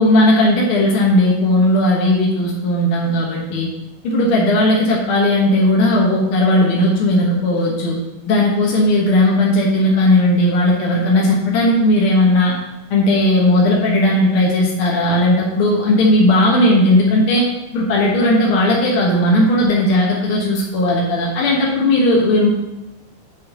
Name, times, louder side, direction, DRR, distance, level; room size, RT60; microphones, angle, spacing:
voice 1, 0.0-3.7 4.0-8.0 8.3-12.5 12.9-17.5 17.7-22.5, left 1 dB, 55° left, -3 dB, 1.7 m, -16 dB
6.0 x 5.3 x 6.7 m, 1.0 s
omnidirectional pair, 3.8 m